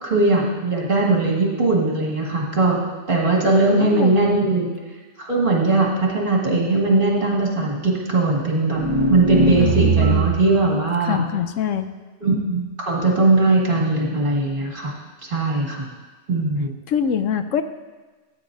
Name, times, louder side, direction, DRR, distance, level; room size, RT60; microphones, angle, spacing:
voice 1, 0.0-2.8 3.1-4.7 5.2-8.8 9.1-11.2 12.2-14.9 15.3-15.9 16.3-16.7, right 2 dB, 45° right, -2 dB, 2.0 m, -19 dB
voice 2, 3.6-4.3 9.6-10.3 11.0-11.9 16.9-17.6, left 8 dB, 85° left, 9 dB, 1.0 m, -24 dB
sound 1, 8.7-10.6, right 3 dB, 75° right, 1.1 m, -20 dB
15.0 x 8.9 x 2.6 m, 1.3 s
omnidirectional pair, 1.3 m